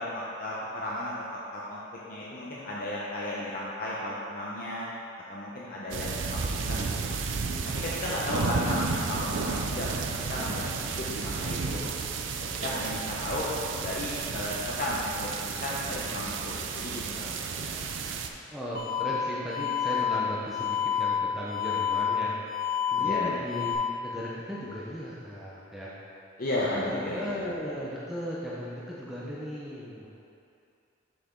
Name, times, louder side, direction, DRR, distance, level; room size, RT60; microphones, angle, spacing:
voice 1, 0.0-1.8 2.1-4.9 5.3-7.2 7.6-11.9 12.4-13.5 13.8-17.8 23.0-23.3 26.4-27.5, left 1 dB, 45° left, -6 dB, 0.7 m, -34 dB
sound 1, 5.9-18.3, right 5 dB, 70° right, 0.5 m, -32 dB
voice 2, 10.3-10.7 12.5-12.9 17.1-17.3 18.5-22.4 22.9-25.9 26.7-30.1, equal, ahead, -8 dB, 0.6 m, -37 dB
sound 2, 18.7-23.7, left 7 dB, 75° left, 1.3 m, -29 dB
6.9 x 5.9 x 3.7 m, 2.6 s
head